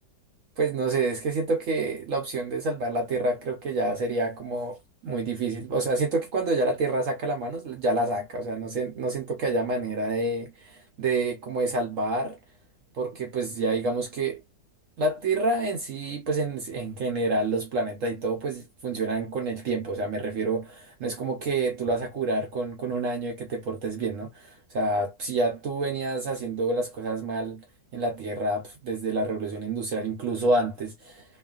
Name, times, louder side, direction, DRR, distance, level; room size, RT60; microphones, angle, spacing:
voice 1, 0.6-4.8 5.0-12.4 12.9-14.4 15.0-27.6 27.9-31.2, right 2 dB, 65° right, 0.8 m, -28 dB
3.0 x 2.3 x 2.3 m
omnidirectional pair, 1.9 m